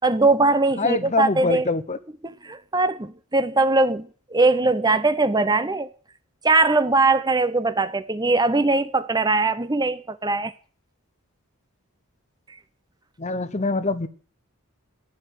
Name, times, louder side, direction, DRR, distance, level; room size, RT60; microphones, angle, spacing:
voice 1, 0.0-1.7 2.2-5.9 6.4-10.5, right 3 dB, 20° right, 0.8 m, -21 dB
voice 2, 0.8-2.0 13.2-14.1, left 3 dB, 30° left, 0.8 m, -24 dB
15.5 x 9.7 x 8.0 m
head